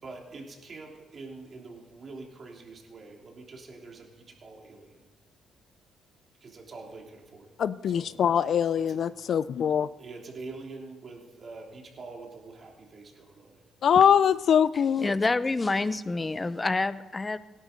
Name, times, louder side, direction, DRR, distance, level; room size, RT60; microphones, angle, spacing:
voice 1, 0.0-5.1 6.4-7.5 7.8-8.1 8.8-9.0 10.0-13.6 13.9-14.0, right 3 dB, 45° right, 0 dB, 3.3 m, -45 dB
voice 2, 7.6-9.9 13.8-15.1, left 8 dB, 60° left, 17 dB, 0.5 m, -23 dB
voice 3, 15.0-17.4, left 3 dB, 25° left, 14 dB, 0.7 m, -27 dB
17.5 x 11.0 x 5.3 m, 1.2 s
cardioid pair, 90°, 0 cm